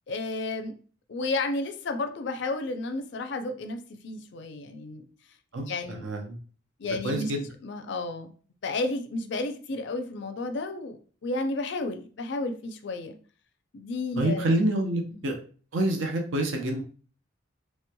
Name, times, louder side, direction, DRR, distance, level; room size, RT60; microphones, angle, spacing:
voice 1, 0.1-0.7 1.1-5.0 5.5-6.1 6.8-7.3 7.6-8.3 8.6-13.2 13.7-14.5 15.1-15.3, left 2 dB, 60° left, 6 dB, 0.4 m, -32 dB
voice 2, 5.5-6.4 6.8-7.5 14.2-15.4 15.7-16.8, right 1 dB, 75° right, 3 dB, 0.6 m, -27 dB
3.2 x 3.0 x 2.2 m, 0.41 s
head